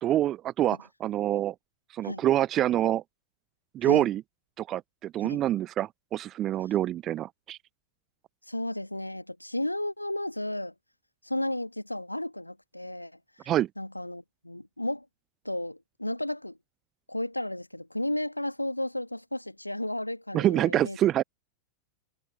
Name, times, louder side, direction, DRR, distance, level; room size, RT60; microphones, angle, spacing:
voice 1, 0.0-1.5 1.9-3.0 3.7-4.2 4.6-7.6 13.5-13.7 20.3-21.2, right 12 dB, 30° right, 0.7 m, -26 dB
voice 2, 8.5-10.7 11.2-15.1 15.5-16.6 17.1-21.0, left 1 dB, 85° left, 1.8 m, -33 dB
figure-of-eight pair, 90°, 0 cm